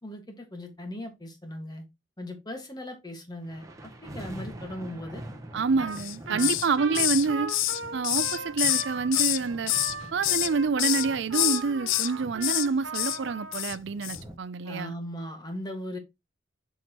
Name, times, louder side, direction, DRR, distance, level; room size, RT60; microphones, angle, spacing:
voice 1, 0.0-1.8 2.2-3.6 4.0-5.2 6.3-6.5 14.6-16.0, left 1 dB, 20° left, 1.7 m, -38 dB
sound 1, 3.4-14.3, right 1 dB, 15° right, 1.3 m, -45 dB
voice 2, 5.5-7.5 7.9-9.7 10.1-14.9, right 4 dB, 60° right, 0.4 m, -27 dB
Trumpet, 5.8-6.0 6.3-13.6, right 4 dB, 75° right, 1.4 m, -38 dB
Hiss, 5.9-6.7 6.9-9.4 9.7-10.5 10.8-11.1 11.3-12.1 12.4-12.7 12.9-13.2 13.5-13.8 14.0-14.2, left 16 dB, 75° left, 0.4 m, -26 dB
7.0 x 5.9 x 3.0 m
head